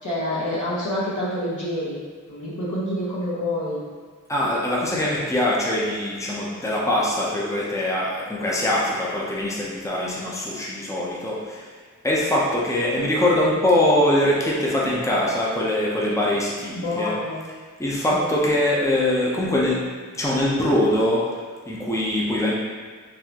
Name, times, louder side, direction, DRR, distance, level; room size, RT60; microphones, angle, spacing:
voice 1, 0.0-2.0 2.3-3.8 16.8-17.4 18.0-18.3, left 1 dB, 70° left, -8 dB, 1.2 m, -27 dB
voice 2, 4.3-11.7 12.0-17.1 17.8-19.9 20.1-21.2 21.7-22.5, left 1 dB, 10° left, -5 dB, 0.7 m, -22 dB
4.1 x 2.6 x 2.9 m, 1.5 s
wide cardioid pair, 50°, 31 cm